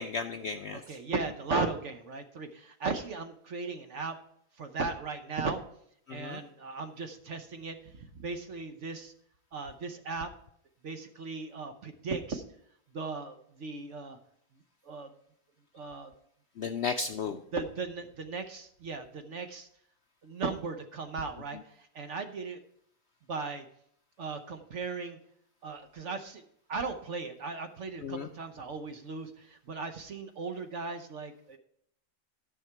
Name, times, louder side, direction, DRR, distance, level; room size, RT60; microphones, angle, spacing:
voice 1, 0.0-0.8 6.1-6.4 16.6-17.4 28.0-28.3, left 5 dB, 70° left, 7 dB, 0.6 m, -34 dB
voice 2, 0.7-4.1 4.6-5.6 6.1-9.1 9.5-10.3 10.8-12.4 12.9-14.2 14.8-15.1 15.7-16.1 17.5-19.7 20.2-22.6 23.3-23.7 24.2-25.2 25.6-26.4 26.7-31.6, right 4 dB, 55° right, 7 dB, 1.1 m, -37 dB
12.5 x 5.9 x 4.6 m, 0.69 s
omnidirectional pair, 1.6 m